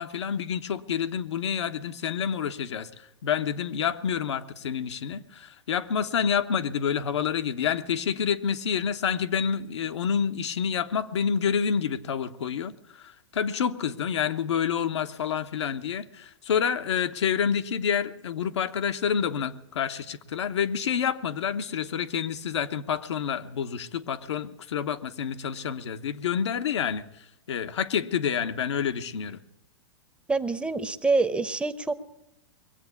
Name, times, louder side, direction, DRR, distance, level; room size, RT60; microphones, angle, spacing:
voice 1, 0.0-29.4, left 7 dB, 85° left, 9 dB, 1.1 m, -28 dB
voice 2, 30.3-31.9, right 3 dB, 10° right, 11 dB, 0.8 m, -26 dB
21.5 x 8.0 x 8.4 m, 0.89 s
hypercardioid pair, 125°, 14 cm